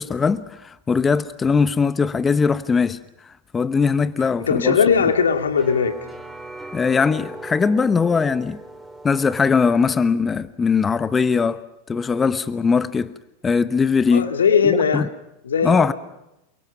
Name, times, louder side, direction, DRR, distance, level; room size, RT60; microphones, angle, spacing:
voice 1, 0.0-3.0 3.5-4.8 6.7-8.6 9.0-13.1 13.4-14.3 14.6-15.1 15.6-15.9, left 5 dB, 20° left, 0.9 m, -20 dB
voice 2, 4.5-6.0 14.1-15.1 15.4-15.9, left 6 dB, 80° left, 2.2 m, -19 dB
sound 1, 4.9-10.2, right 1 dB, ahead, 4.0 m, -38 dB
29.5 x 23.5 x 5.9 m
hypercardioid pair, 95°, 0 cm